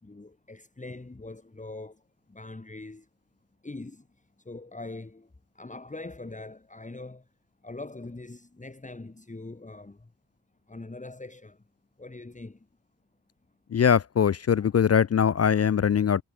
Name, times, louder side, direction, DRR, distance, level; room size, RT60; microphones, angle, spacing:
voice 1, 0.0-2.0 2.3-3.1 3.6-4.1 4.4-7.3 7.6-10.1 10.7-11.6 12.0-12.7 14.6-14.7, left 2 dB, 20° left, 2.7 m, -42 dB
voice 2, 13.7-16.2, left 7 dB, 40° left, 0.4 m, -22 dB
wide cardioid pair, 130°, 39 cm